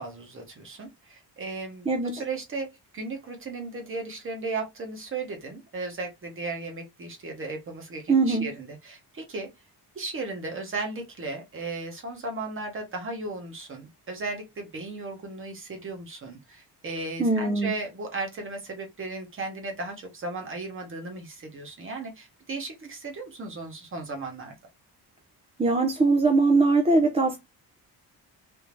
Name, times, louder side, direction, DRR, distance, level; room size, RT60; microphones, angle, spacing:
voice 1, 0.0-2.7 2.9-9.5 9.9-24.5, right 3 dB, 30° right, 1.1 m, -36 dB
voice 2, 1.9-2.2 8.1-8.5 17.2-17.7 25.6-27.4, right 3 dB, 15° right, 0.5 m, -21 dB
3.5 x 2.7 x 3.0 m
cardioid pair, 160°, 38 cm